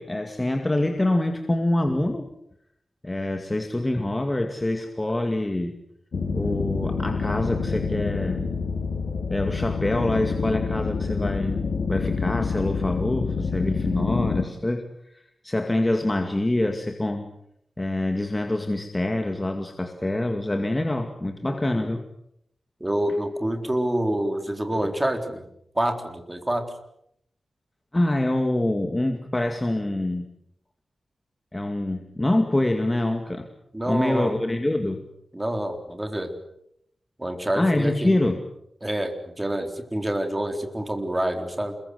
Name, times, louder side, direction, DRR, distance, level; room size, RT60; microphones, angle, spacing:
voice 1, 0.0-2.3 3.0-5.7 6.3-8.5 9.3-17.3 17.8-22.0 27.9-30.3 31.5-33.5 33.9-35.0 37.6-38.5, left 1 dB, 15° left, 5 dB, 2.2 m, -25 dB
sound 1, 6.1-14.4, left 5 dB, 70° left, 2.8 m, -27 dB
voice 2, 21.5-21.9 22.8-25.5 25.8-26.6 33.7-34.3 35.3-36.3 37.2-38.1 38.8-41.8, right 1 dB, 15° right, 5 dB, 3.9 m, -27 dB
28.5 x 22.0 x 8.0 m, 0.75 s
wide cardioid pair, 120°, 0 cm